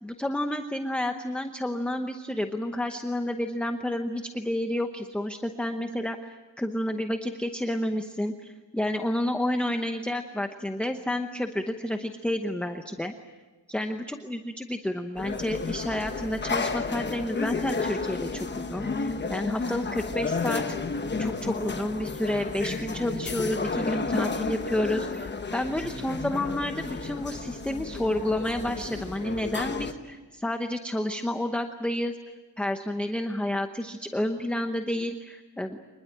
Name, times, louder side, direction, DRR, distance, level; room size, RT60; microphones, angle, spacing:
voice 1, 0.0-13.1 13.7-20.8 21.2-32.2 32.6-35.8, left 1 dB, 5° left, 6 dB, 0.9 m, -30 dB
sound 1, 15.2-29.9, left 4 dB, 25° left, 1.1 m, -32 dB
25.5 x 21.5 x 8.7 m, 1.2 s
wide cardioid pair, 170°, 44 cm